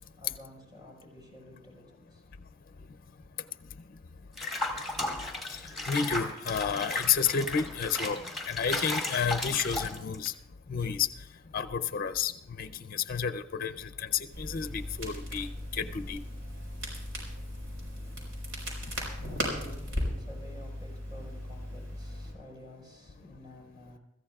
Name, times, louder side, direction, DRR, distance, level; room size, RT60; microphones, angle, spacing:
voice 1, 0.2-2.3 19.0-24.0, left 1 dB, 20° right, -1 dB, 4.9 m, -51 dB
Water / Bathtub (filling or washing), 4.4-10.3, left 1 dB, ahead, 2.0 m, -35 dB
voice 2, 5.9-10.3 10.7-11.1 11.5-12.3 12.6-16.2, left 7 dB, 45° left, 9 dB, 0.5 m, -31 dB
Crackle, 14.3-22.3, equal, 85° right, 4.6 m, -37 dB
24.5 x 14.5 x 2.4 m, 0.91 s
head